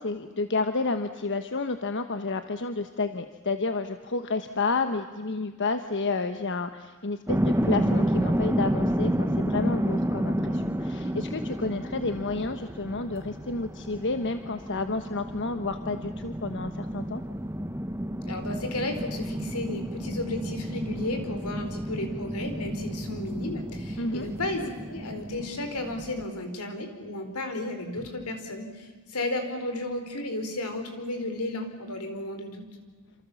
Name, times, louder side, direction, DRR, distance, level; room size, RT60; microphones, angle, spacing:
voice 1, 0.0-17.2 24.0-24.3, left 3 dB, 55° left, 8 dB, 1.2 m, -30 dB
sound 1, 7.3-26.2, equal, 10° right, 1.0 m, -30 dB
voice 2, 18.2-32.6, left 2 dB, 80° left, 6 dB, 4.5 m, -33 dB
28.0 x 27.0 x 7.2 m, 1.4 s
head